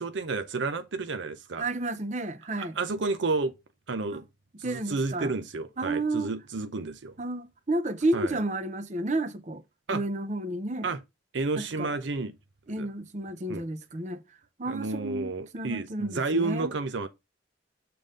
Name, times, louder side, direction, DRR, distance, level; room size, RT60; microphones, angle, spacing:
voice 1, 0.0-1.6 2.6-3.5 3.9-4.2 4.6-7.2 8.1-8.4 9.9-10.0 10.8-11.0 11.3-12.3 12.8-12.9 13.5-13.6 14.7-17.1, right 3 dB, 80° right, 0.6 m, -31 dB
voice 2, 1.6-2.8 4.1-4.2 4.6-5.3 5.8-6.3 7.2-9.6 9.9-10.9 11.6-11.9 12.7-14.2 14.6-16.7, right 2 dB, 40° right, 0.7 m, -31 dB
6.7 x 3.8 x 5.1 m
head